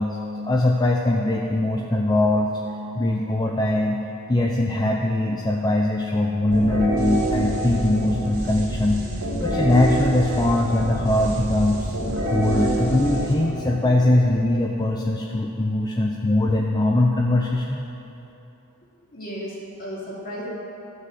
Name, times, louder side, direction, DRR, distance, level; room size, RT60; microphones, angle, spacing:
voice 1, 0.0-2.5 2.9-4.0 4.3-9.0 9.4-11.9 12.3-17.8, left 1 dB, 20° left, 0 dB, 0.6 m, -21 dB
sound 1, 6.5-14.2, right 1 dB, 70° right, 2.7 m, -26 dB
voice 2, 19.1-20.5, equal, 40° left, -6 dB, 2.9 m, -34 dB
13.0 x 6.4 x 7.6 m, 3.0 s
head